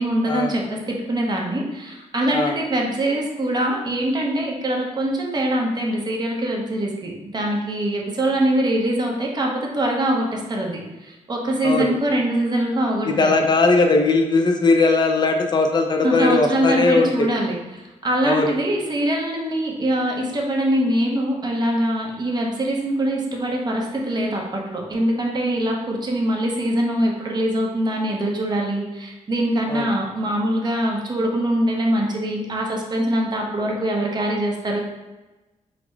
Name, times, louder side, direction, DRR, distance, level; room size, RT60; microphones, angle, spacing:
voice 1, 0.0-13.4 16.0-34.8, right 1 dB, 30° right, -1 dB, 0.8 m, -23 dB
voice 2, 13.1-17.3 18.2-18.5 29.7-29.9, left 3 dB, 30° left, 3 dB, 0.5 m, -19 dB
3.9 x 2.1 x 4.5 m, 1.1 s
cardioid pair, 120°, 14 cm